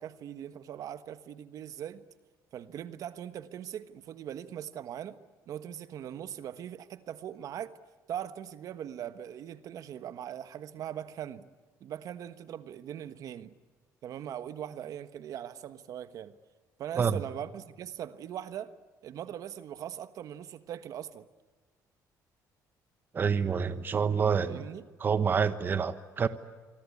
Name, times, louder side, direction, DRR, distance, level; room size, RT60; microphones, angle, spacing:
voice 1, 0.0-2.0 2.5-5.2 5.5-7.8 8.1-11.5 11.8-13.5 14.0-16.4 16.8-18.7 19.0-21.3 24.5-24.9, right 10 dB, 60° right, 1.3 m, -40 dB
voice 2, 23.1-24.7 25.0-26.3, right 6 dB, 30° right, 1.2 m, -27 dB
26.5 x 25.0 x 8.6 m
cardioid pair, 145°, 7 cm